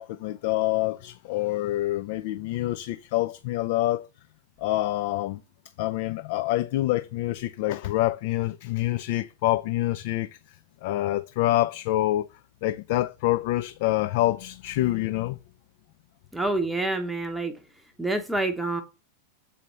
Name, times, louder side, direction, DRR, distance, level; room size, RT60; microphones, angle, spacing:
voice 1, 0.0-4.1 4.6-5.4 5.8-10.3 10.8-12.3 12.6-15.4, left 16 dB, 50° left, 0.3 m, -26 dB
voice 2, 16.3-17.6 18.0-18.8, right 2 dB, 5° right, 0.8 m, -27 dB
6.9 x 4.2 x 4.2 m
figure-of-eight pair, 90°, 0 cm